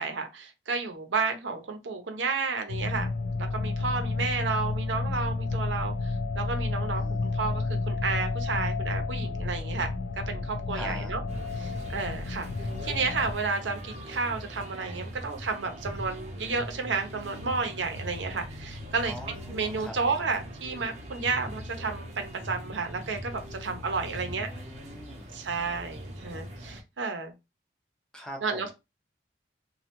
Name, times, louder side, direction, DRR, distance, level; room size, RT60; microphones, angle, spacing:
voice 1, 0.0-3.1 3.4-9.9 10.3-11.2 11.6-24.5 25.3-27.3 28.4-28.7, right 4 dB, 85° right, 0.7 m, -32 dB
sound 1, 2.7-13.3, left 3 dB, 70° left, 0.4 m, -31 dB
voice 2, 7.0-7.8 10.7-11.1 19.0-20.2 24.0-25.3 26.6-26.7 28.1-28.7, equal, 5° left, 0.6 m, -44 dB
sound 2, 11.3-26.8, equal, 40° right, 0.7 m, -41 dB
3.2 x 2.3 x 2.9 m
head